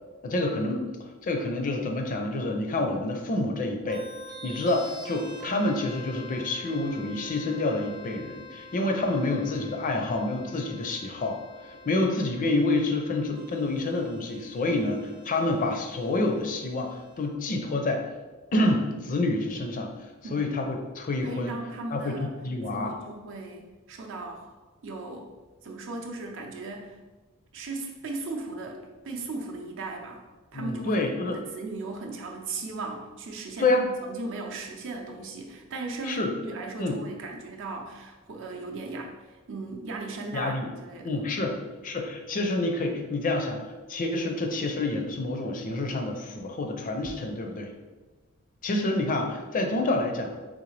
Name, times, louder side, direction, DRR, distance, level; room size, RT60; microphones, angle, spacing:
voice 1, 0.2-0.9 1.2-4.0 4.4-11.4 11.6-18.0 18.5-19.9 20.3-21.6 21.9-22.2 22.4-23.0 30.5-31.4 33.6-33.9 36.0-36.3 36.8-37.0 40.3-40.7 41.0-41.5 41.8-47.7 48.6-50.3, left 2 dB, 40° left, 4 dB, 0.4 m, -28 dB
sound 1, 3.9-17.3, left 1 dB, 20° right, 0.6 m, -47 dB
voice 2, 21.2-22.3 22.7-25.3 25.6-27.0 27.5-30.2 30.5-41.7, right 3 dB, 60° right, 1 dB, 0.6 m, -37 dB
3.8 x 3.1 x 3.2 m, 1.3 s
head